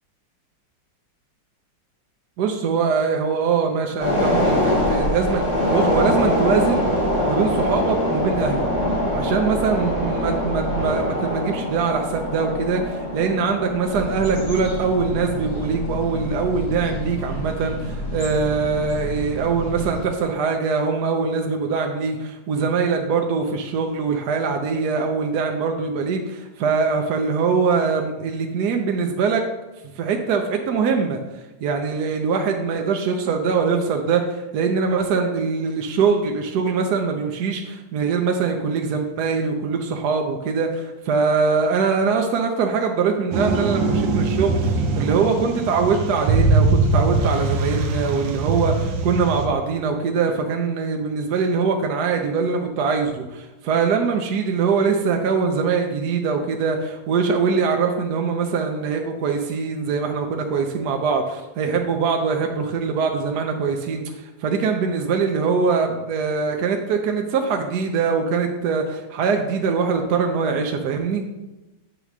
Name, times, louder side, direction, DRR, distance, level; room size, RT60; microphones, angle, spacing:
voice 1, 2.4-6.8 7.3-8.7 9.1-29.4 30.0-31.2 31.6-71.2, right 5 dB, 70° right, 3 dB, 1.1 m, -22 dB
sound 1, 4.0-18.6 18.9-19.1, left 1 dB, 20° left, 1.6 m, -24 dB
sound 2, 13.8-20.1, equal, 80° left, 2.2 m, -31 dB
sound 3, 43.3-49.5, right 3 dB, 90° right, 1.4 m, -21 dB
8.1 x 3.0 x 5.9 m, 1.1 s
omnidirectional pair, 2.0 m